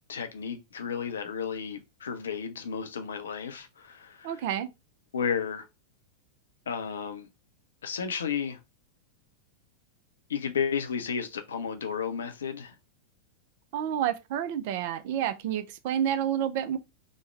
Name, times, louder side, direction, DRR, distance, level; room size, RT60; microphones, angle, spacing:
voice 1, 0.1-4.5 5.1-5.7 6.7-7.3 7.8-8.6 10.3-12.7, left 7 dB, 65° left, 0.5 m, -33 dB
voice 2, 4.2-4.7 13.7-16.8, right 10 dB, 50° right, 0.4 m, -29 dB
3.0 x 2.1 x 3.1 m
figure-of-eight pair, 90°, 0 cm